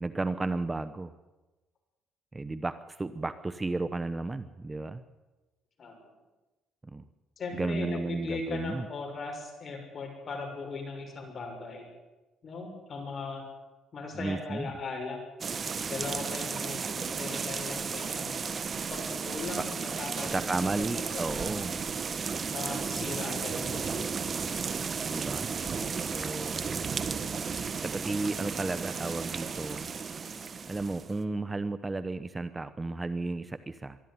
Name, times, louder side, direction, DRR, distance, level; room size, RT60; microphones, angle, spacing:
voice 1, 0.0-1.1 2.3-5.0 6.9-7.0 7.5-8.9 14.2-14.7 20.2-21.8 25.0-25.5 26.1-26.6 27.8-29.9 30.7-34.0, right 3 dB, 15° right, 12 dB, 0.9 m, -33 dB
voice 2, 7.4-11.9 12.4-13.4 13.9-15.2 15.9-18.4 18.9-19.6 20.0-20.4 21.1-21.5 22.5-24.2, left 3 dB, 40° left, 3 dB, 6.6 m, -38 dB
sound 1, 15.4-31.2, right 5 dB, 35° right, 1.4 m, -34 dB
23.5 x 13.0 x 9.6 m, 1.1 s
cardioid pair, 105°, 0 cm